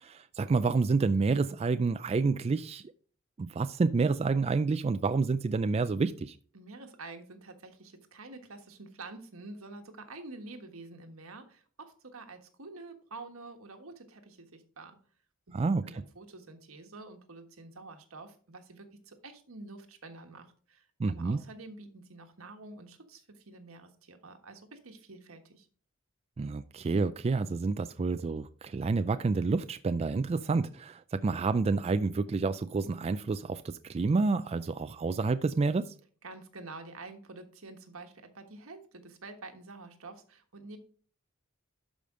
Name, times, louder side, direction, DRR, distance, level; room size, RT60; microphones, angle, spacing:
voice 1, 0.0-2.8 3.4-6.4 15.5-15.9 21.0-21.4 26.4-35.9, right 4 dB, 30° right, 0.3 m, -29 dB
voice 2, 6.5-15.0 15.5-15.6 15.8-25.7 36.2-40.8, right 3 dB, 85° right, 1.4 m, -48 dB
12.0 x 5.1 x 3.7 m
head